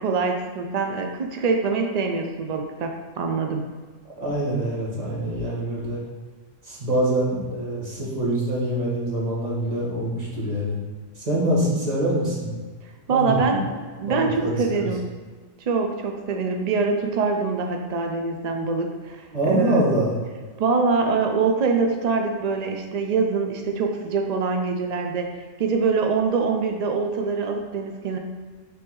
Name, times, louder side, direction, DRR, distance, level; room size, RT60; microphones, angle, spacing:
voice 1, 0.0-3.7 13.1-15.0 15.7-19.9 20.6-25.3 25.6-28.2, right 4 dB, 80° right, 3 dB, 0.3 m, -24 dB
voice 2, 4.2-6.0 6.6-10.8 11.2-12.5 13.1-13.6 14.0-14.9 19.3-20.2, right 1 dB, 30° right, -5 dB, 1.5 m, -25 dB
6.0 x 3.5 x 4.6 m, 1.4 s
omnidirectional pair, 1.4 m